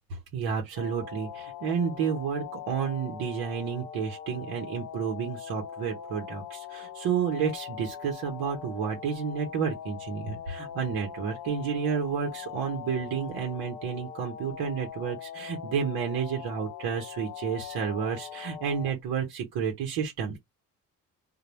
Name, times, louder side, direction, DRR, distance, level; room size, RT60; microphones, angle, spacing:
voice 1, 0.1-20.4, right 7 dB, 75° right, 0.9 m, -31 dB
sound 1, 0.8-18.9, left 9 dB, 60° left, 0.6 m, -41 dB
2.2 x 2.0 x 2.9 m
supercardioid pair, 65°, 37 cm